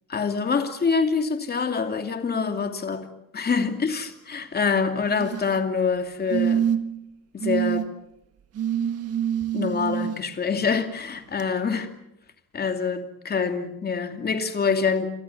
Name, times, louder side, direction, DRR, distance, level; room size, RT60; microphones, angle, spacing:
voice 1, 0.1-3.1 3.3-6.6 7.3-7.9 9.5-11.9 12.5-15.1, left 5 dB, 30° left, 7 dB, 2.7 m, -25 dB
sound 1, 5.0-5.6 6.3-7.0 7.4-7.8 8.6-10.2 11.4-11.5, right 9 dB, 45° right, 1.7 m, -26 dB
29.5 x 23.0 x 7.2 m, 0.80 s
cardioid pair, 165°, 34 cm